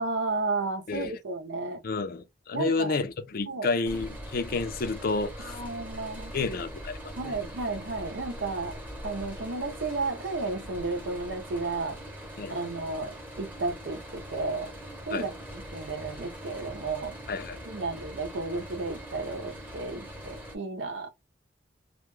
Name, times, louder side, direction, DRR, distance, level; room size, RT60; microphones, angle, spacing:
voice 1, 0.0-1.8 2.5-3.0 3.5-3.7 5.4-6.3 7.2-8.8 9.0-12.0 12.5-14.7 15.1-15.3 15.7-17.1 17.6-21.1, right 3 dB, 85° right, 0.7 m, -33 dB
voice 2, 1.8-5.6 6.3-6.9 7.2-7.3 12.4-12.6 15.1-15.2 17.3-17.6, left 3 dB, 55° left, 0.5 m, -30 dB
sound 1, 3.8-20.6, equal, 10° right, 0.8 m, -42 dB
2.3 x 2.2 x 3.1 m
head